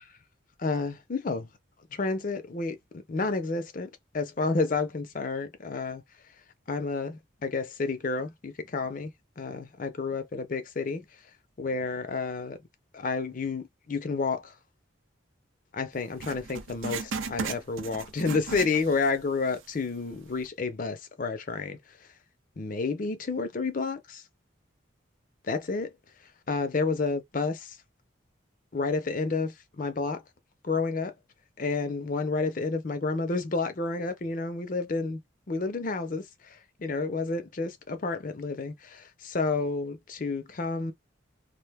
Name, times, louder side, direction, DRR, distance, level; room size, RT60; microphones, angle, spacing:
voice 1, 0.6-1.5 1.9-2.8 3.1-6.0 6.7-11.0 11.6-12.6 12.9-14.5 15.7-22.1 22.6-24.2 25.4-25.9 26.5-27.8 28.7-30.2 30.6-31.1 31.6-35.2 35.5-40.9, left 4 dB, 40° left, 0.5 m, -30 dB
Writing, 16.2-19.2 19.5-19.6 20.3-20.4, right 4 dB, 90° right, 0.6 m, -36 dB
2.5 x 2.1 x 3.4 m
head